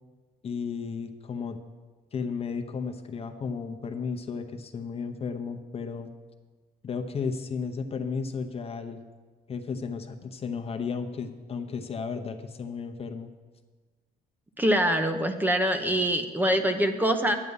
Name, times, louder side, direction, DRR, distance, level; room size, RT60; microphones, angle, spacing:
voice 1, 0.4-1.6 2.1-6.1 6.8-9.0 9.5-13.3, left 5 dB, 35° left, 6 dB, 0.9 m, -34 dB
voice 2, 14.6-17.4, equal, 10° right, 6 dB, 0.8 m, -24 dB
11.0 x 9.6 x 5.5 m, 1.4 s
cardioid pair, 110°, 17 cm